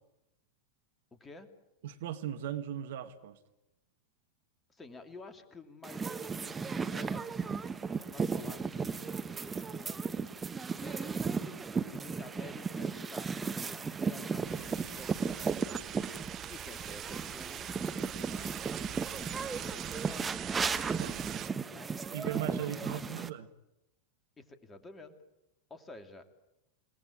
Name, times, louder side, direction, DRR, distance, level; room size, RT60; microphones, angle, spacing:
voice 1, 1.1-1.5 4.7-7.4 7.9-10.5 10.8-11.2 11.8-15.6 16.5-20.9 21.7-22.0 22.5-23.2 24.4-25.2 25.7-26.2, left 2 dB, 15° left, 7 dB, 2.9 m, -51 dB
voice 2, 1.8-3.4 21.0-21.3 22.1-23.5, right 10 dB, 55° right, 10 dB, 1.6 m, -38 dB
sound 1, 5.8-23.3, right 5 dB, 15° right, 1.3 m, -35 dB
sound 2, 14.4-21.5, right 12 dB, 30° right, 1.0 m, -43 dB
29.5 x 19.0 x 9.4 m, 0.92 s
figure-of-eight pair, 90°, 0 cm